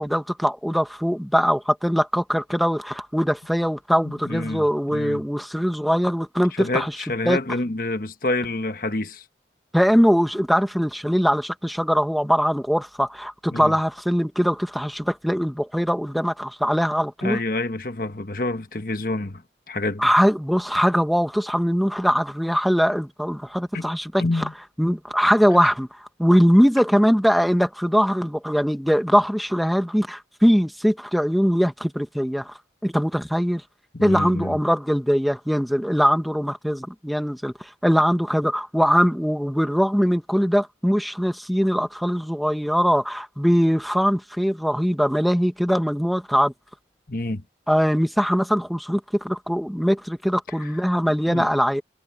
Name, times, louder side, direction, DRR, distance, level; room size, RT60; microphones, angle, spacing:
voice 1, 0.0-6.9 7.3-7.4 9.7-17.4 20.0-24.5 24.8-32.5 32.8-33.6 34.0-46.5 47.7-51.8, equal, ahead, 1.5 m, -21 dB
voice 2, 4.0-5.2 6.5-9.2 13.5-13.7 17.2-19.4 19.7-20.1 23.7-23.9 24.2-24.5 33.9-34.6 47.1-47.4 50.6-50.7 51.3-51.5, left 2 dB, 50° left, 1.2 m, -28 dB
head